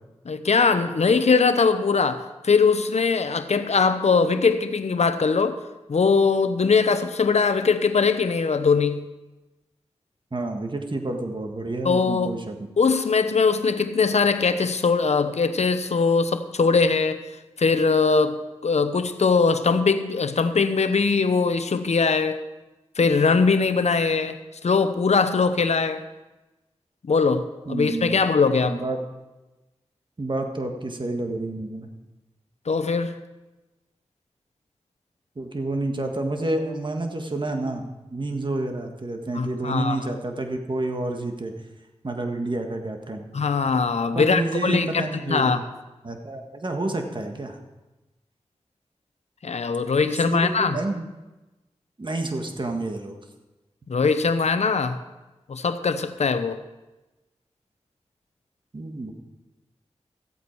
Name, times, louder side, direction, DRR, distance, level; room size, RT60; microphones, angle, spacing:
voice 1, 0.2-5.6 5.9-9.0 11.8-12.5 12.8-17.2 17.6-22.4 23.0-24.4 24.6-26.0 27.0-28.8 32.7-33.1 39.3-40.1 43.3-45.6 49.4-50.8 53.9-55.0 55.5-56.6, left 4 dB, 70° left, 10 dB, 0.8 m, -21 dB
voice 2, 10.3-12.6 27.7-28.2 28.6-29.0 30.2-31.9 35.3-41.5 42.0-43.2 44.1-45.6 46.0-47.6 50.0-51.1 52.0-53.2 58.7-59.1, right 2 dB, 45° right, 4 dB, 1.6 m, -29 dB
14.5 x 8.3 x 4.6 m, 1.1 s
cardioid pair, 45°, 12 cm